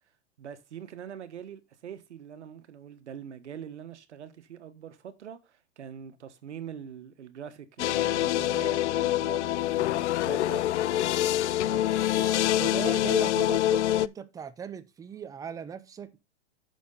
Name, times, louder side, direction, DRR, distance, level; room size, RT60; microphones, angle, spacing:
voice 1, 0.4-10.6 11.5-12.5 13.2-13.3, right 8 dB, 85° right, 1.4 m, -43 dB
sound 1, 7.8-14.1, left 13 dB, 80° left, 0.5 m, -25 dB
voice 2, 12.6-16.2, right 7 dB, 10° right, 0.6 m, -37 dB
9.6 x 6.2 x 3.9 m
hypercardioid pair, 135°, 34 cm